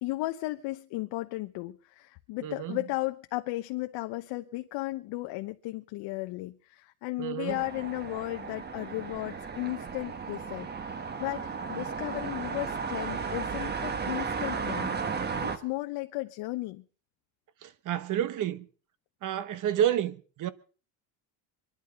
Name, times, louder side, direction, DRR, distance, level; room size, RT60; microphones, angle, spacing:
voice 1, 0.0-16.8, left 19 dB, 80° left, 1.0 m, -35 dB
voice 2, 2.4-2.8 7.2-7.6 17.6-18.7 19.2-20.5, right 10 dB, 50° right, 1.2 m, -30 dB
sound 1, 7.5-15.6, right 5 dB, 25° right, 1.3 m, -34 dB
24.0 x 11.0 x 5.2 m
cardioid pair, 155°, 41 cm